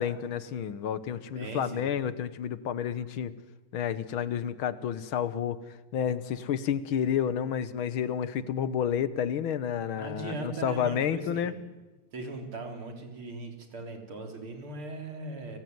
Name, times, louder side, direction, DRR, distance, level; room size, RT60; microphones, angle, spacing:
voice 1, 0.0-3.3 3.7-5.6 5.9-11.5, left 8 dB, 75° left, 15 dB, 1.9 m, -30 dB
voice 2, 1.3-1.8 9.9-11.6 12.1-15.6, right 2 dB, 80° right, 4 dB, 4.6 m, -39 dB
30.0 x 20.0 x 9.5 m, 1.2 s
omnidirectional pair, 2.3 m